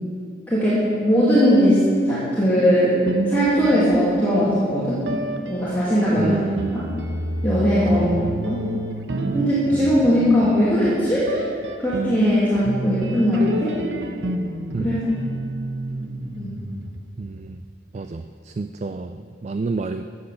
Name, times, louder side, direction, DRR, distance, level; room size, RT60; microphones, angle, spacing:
voice 1, 0.5-3.0 3.3-5.0 5.5-6.4 6.7-6.8 7.4-8.1 8.5-8.6 9.3-11.4 11.8-13.7 14.8-14.9 16.4-16.5, equal, 10° left, -11 dB, 2.4 m, -19 dB
sound 1, 3.0-4.5 5.0-17.3, right 1 dB, 85° right, 1.0 m, -30 dB
voice 2, 6.2-7.0 7.9-8.4 9.7-9.9 14.7-14.9 17.2-17.6 17.9-20.0, right 3 dB, 40° right, 8 dB, 0.3 m, -29 dB
14.0 x 7.9 x 6.7 m, 2.3 s
head